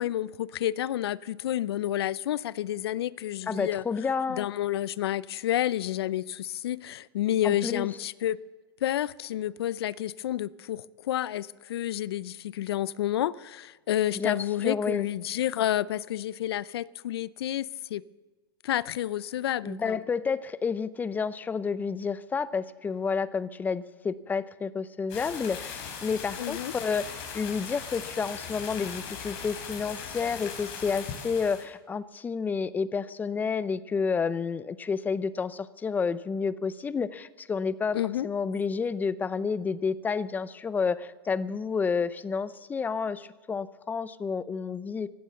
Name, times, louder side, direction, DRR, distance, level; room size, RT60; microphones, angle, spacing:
voice 1, 0.0-3.8 4.3-8.4 8.8-18.0 18.6-20.0 26.4-26.7 37.9-38.3, left 12 dB, 80° left, 0.5 m, -30 dB
voice 2, 3.5-4.5 7.4-7.9 14.1-14.4 14.6-15.1 19.6-38.0 38.2-45.1, left 5 dB, 15° left, 0.6 m, -30 dB
sound 1, 25.1-31.6, left 6 dB, 45° left, 4.4 m, -39 dB
16.0 x 12.0 x 7.0 m
hypercardioid pair, 130°, 13 cm